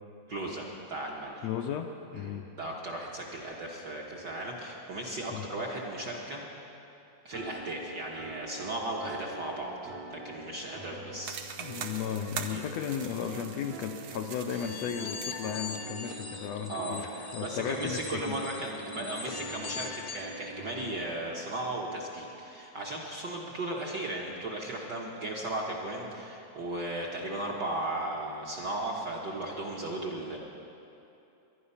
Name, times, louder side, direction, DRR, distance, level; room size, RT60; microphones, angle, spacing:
voice 1, 0.3-1.5 2.1-6.4 7.2-11.4 12.5-12.7 16.7-30.4, right 1 dB, 50° right, -2 dB, 1.4 m, -36 dB
voice 2, 1.4-2.5 5.3-5.4 11.6-18.4, left 8 dB, 80° left, 5 dB, 1.6 m, -35 dB
sound 1, 7.3-21.0, right 3 dB, 65° right, 2.5 m, -46 dB
sound 2, 11.2-15.9, right 7 dB, 85° right, 1.1 m, -43 dB
sound 3, 14.5-20.3, left 5 dB, 65° left, 0.9 m, -41 dB
21.5 x 11.0 x 5.6 m, 2.8 s
omnidirectional pair, 3.4 m